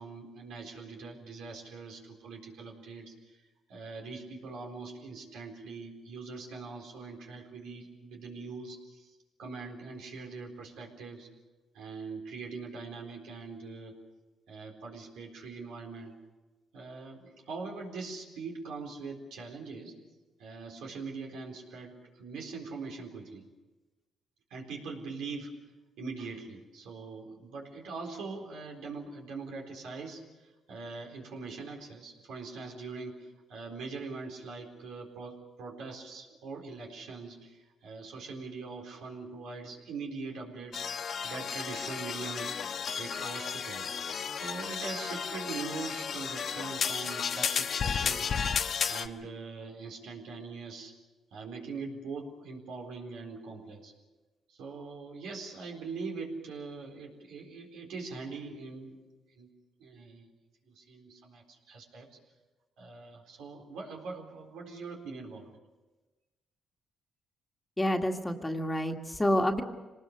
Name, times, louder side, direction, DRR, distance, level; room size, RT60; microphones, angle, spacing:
voice 1, 0.0-3.4 3.7-11.3 11.7-14.0 14.5-16.1 16.7-19.9 20.4-23.4 24.5-25.6 26.0-30.2 30.7-33.2 33.5-40.8 41.2-42.6 43.0-43.9 44.3-48.3 48.9-50.9 51.3-53.9 54.6-59.0 59.4-59.5 59.8-60.3 60.7-62.1 62.8-65.5, right 4 dB, 85° right, 1 dB, 4.1 m, -42 dB
sound 1, 40.7-49.1, left 7 dB, 55° left, 1.0 m, -33 dB
voice 2, 67.8-69.6, left 1 dB, 10° left, 3 dB, 1.9 m, -28 dB
25.5 x 19.5 x 6.7 m, 1.2 s
cardioid pair, 90°, 0 cm